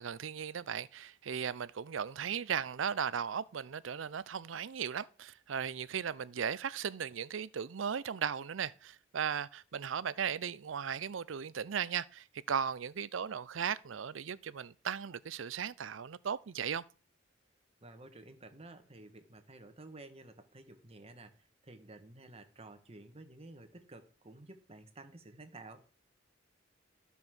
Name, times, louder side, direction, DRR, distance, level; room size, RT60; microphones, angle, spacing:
voice 1, 0.0-16.8, right 7 dB, 85° right, 0.5 m, -37 dB
voice 2, 17.8-25.8, right 2 dB, 35° right, 1.4 m, -52 dB
13.5 x 5.5 x 6.2 m
head